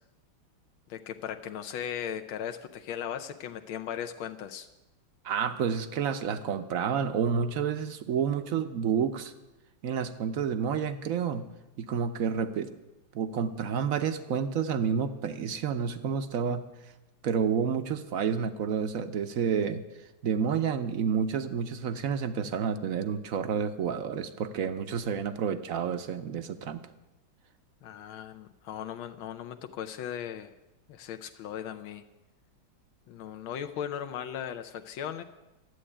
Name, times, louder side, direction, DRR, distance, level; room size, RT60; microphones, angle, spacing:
voice 1, 0.9-4.7 27.8-30.5 30.9-32.0 33.1-35.2, left 9 dB, 85° left, 7 dB, 1.5 m, -37 dB
voice 2, 5.2-9.3 9.8-11.5 11.8-12.7 13.1-16.7 17.2-19.8 20.2-26.8, right 7 dB, 65° right, 10 dB, 0.9 m, -29 dB
13.0 x 7.9 x 9.9 m, 1.0 s
omnidirectional pair, 2.2 m